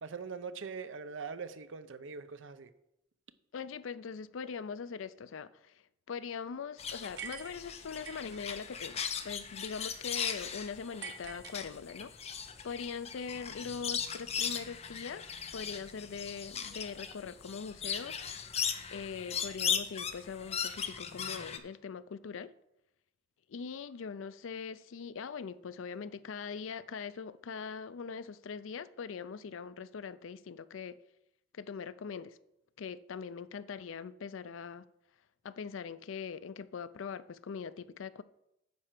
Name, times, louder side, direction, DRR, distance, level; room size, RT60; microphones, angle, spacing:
voice 1, 0.0-2.7, right 5 dB, 80° right, 0.6 m, -42 dB
voice 2, 3.5-5.8 6.1-12.1 12.4-18.3 18.9-22.5 23.5-31.0 31.5-32.4 32.8-34.9 35.4-38.2, left 6 dB, 85° left, 0.4 m, -42 dB
sound 1, 6.8-21.6, left 7 dB, 30° left, 0.6 m, -38 dB
sound 2, 7.2-8.4 11.0-12.2, right 6 dB, 60° right, 1.1 m, -45 dB
9.6 x 4.4 x 7.4 m
head